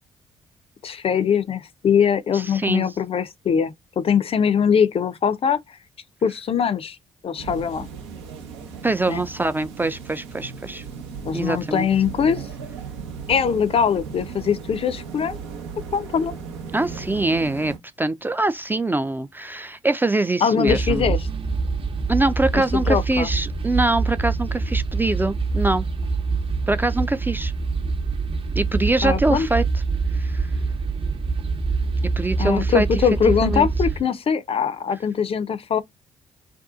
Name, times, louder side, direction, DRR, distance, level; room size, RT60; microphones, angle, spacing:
voice 1, 0.8-5.6 6.2-7.0 7.2-7.9 9.1-9.2 11.2-12.5 13.3-15.4 15.9-16.3 20.4-21.2 22.5-23.3 29.0-29.5 32.4-35.8, left 7 dB, 45° left, 0.5 m, -22 dB
voice 2, 2.3-2.9 8.8-10.8 11.3-11.9 16.7-21.1 22.1-25.8 26.7-27.5 28.6-29.6 30.1-30.5 32.2-33.0 33.3-33.7, right 2 dB, 15° right, 0.3 m, -24 dB
sound 1, 7.4-17.8, right 6 dB, 85° right, 0.7 m, -36 dB
sound 2, 20.7-34.0, right 4 dB, 40° right, 0.7 m, -25 dB
2.6 x 2.3 x 2.4 m
hypercardioid pair, 45°, 14 cm